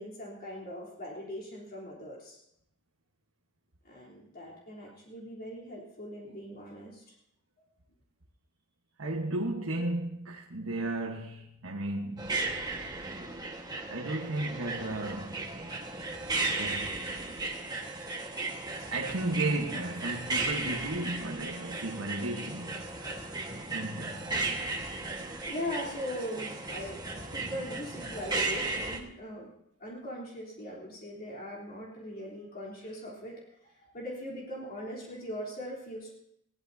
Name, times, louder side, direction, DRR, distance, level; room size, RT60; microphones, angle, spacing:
voice 1, 0.0-2.4 3.8-7.0 24.6-24.7 25.5-27.0 27.3-29.5 29.8-36.1, equal, 45° left, 3.6 m, -40 dB
voice 2, 9.0-12.4 13.9-15.5 16.4-17.0 18.9-22.8 23.7-24.5, right 2 dB, 75° right, 1.4 m, -34 dB
sound 1, 12.2-29.0, right 3 dB, 20° right, 1.5 m, -35 dB
21.0 x 17.0 x 2.8 m
head